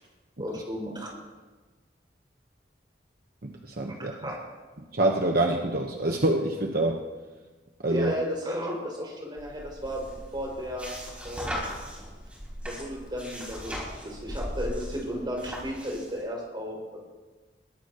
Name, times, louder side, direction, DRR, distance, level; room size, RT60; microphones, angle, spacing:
voice 1, 0.4-1.1 3.9-4.4 7.9-10.0 10.3-10.9 11.2-11.5 12.6-13.8 14.0-17.0, equal, 25° right, -3 dB, 6.1 m, -34 dB
voice 2, 3.4-4.1 4.9-7.0 7.8-8.1, right 1 dB, 60° right, 1 dB, 1.2 m, -26 dB
sound 1, 9.4-16.2, equal, 10° right, 5.1 m, -38 dB
22.5 x 19.0 x 3.1 m, 1.3 s
head